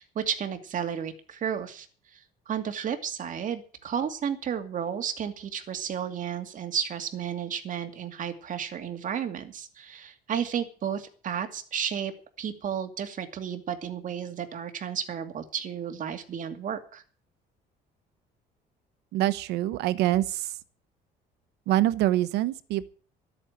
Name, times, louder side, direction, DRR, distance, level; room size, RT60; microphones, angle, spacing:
voice 1, 0.0-1.9 2.1-12.1 12.4-17.0, right 8 dB, 50° right, 2.5 m, -32 dB
voice 2, 19.1-20.6 21.7-22.9, right 14 dB, 90° right, 1.0 m, -25 dB
13.0 x 9.1 x 8.1 m
cardioid pair, 110°, 17 cm